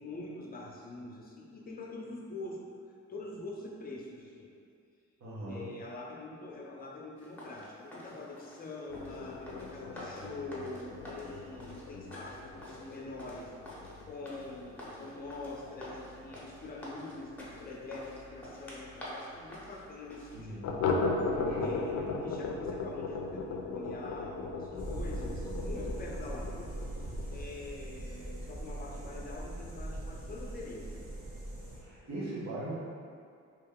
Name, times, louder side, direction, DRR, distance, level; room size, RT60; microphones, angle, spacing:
voice 1, 0.0-2.7 3.1-4.5 5.5-13.5 14.1-20.6 21.2-21.3 21.6-26.7 27.0-31.0, left 2 dB, 30° left, -3 dB, 0.7 m, -44 dB
voice 2, 5.2-5.7 20.3-20.8 21.3-21.8 31.8-32.7, right 1 dB, 60° right, -9 dB, 1.2 m, -40 dB
sound 1, 7.2-20.4, equal, 5° left, 0.9 m, -48 dB
sound 2, 8.9-18.1 18.4-18.5 18.9-19.0 19.3-19.4 20.6-27.4, left 3 dB, 70° left, 0.5 m, -37 dB
sound 3, 24.8-31.8, right 1 dB, 30° right, 1.2 m, -40 dB
3.0 x 2.7 x 3.6 m, 2.3 s
cardioid pair, 90°, 30 cm